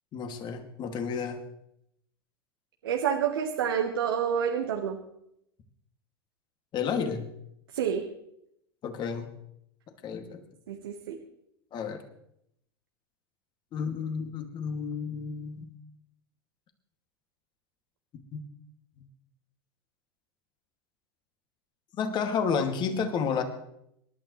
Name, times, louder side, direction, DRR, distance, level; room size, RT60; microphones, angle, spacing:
voice 1, 0.1-1.4 6.7-7.2 8.8-9.3 10.0-10.4 11.7-12.0 13.7-15.7 18.3-18.4 21.9-23.4, left 6 dB, 35° left, 5 dB, 2.5 m, -31 dB
voice 2, 2.8-5.0 7.7-8.0 10.7-11.2, right 8 dB, 70° right, 2 dB, 1.5 m, -28 dB
26.5 x 12.0 x 3.3 m, 0.76 s
hypercardioid pair, 90°, 13 cm